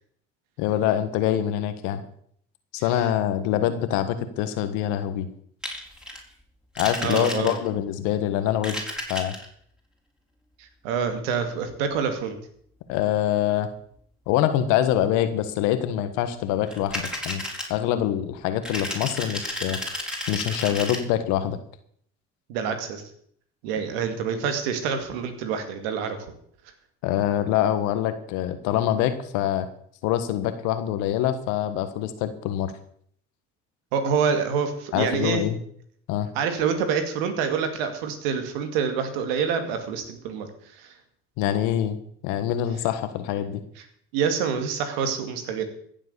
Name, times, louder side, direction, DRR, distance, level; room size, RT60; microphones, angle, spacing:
voice 1, 0.6-2.0 2.7-5.3 6.8-8.8 9.1-9.4 12.9-13.7 14.3-17.4 17.7-19.8 20.3-21.6 27.0-29.7 30.0-32.7 34.9-35.6 36.1-36.3 41.4-43.6, left 11 dB, 80° left, 10 dB, 1.5 m, -25 dB
sound 1, 5.6-6.2 6.7-7.8 8.5-9.5 16.7-17.7 18.6-21.0, left 1 dB, 5° right, 4.3 m, -32 dB
voice 2, 7.0-7.6 10.6-12.4 22.5-23.0 23.6-26.2 33.9-35.5 36.3-40.9 44.1-45.7, right 6 dB, 90° right, 8 dB, 2.3 m, -27 dB
15.5 x 7.5 x 7.0 m, 0.64 s
supercardioid pair, 75°, 29 cm